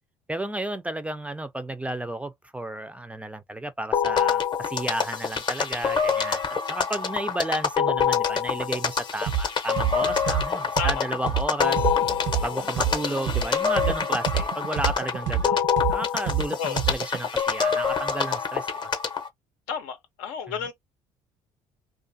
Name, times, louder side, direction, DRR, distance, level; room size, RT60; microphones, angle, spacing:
voice 1, 0.3-11.9 12.4-15.6 15.9-18.9, right 1 dB, 10° right, 0.3 m, -32 dB
sound 1, 3.9-19.3, left 6 dB, 35° left, 0.6 m, -26 dB
sound 2, 9.3-9.4 9.8-13.4 13.8-17.2, right 9 dB, 75° right, 0.7 m, -27 dB
voice 2, 19.7-20.7, left 7 dB, 90° left, 0.6 m, -31 dB
2.4 x 2.4 x 2.5 m
supercardioid pair, 85°, 14 cm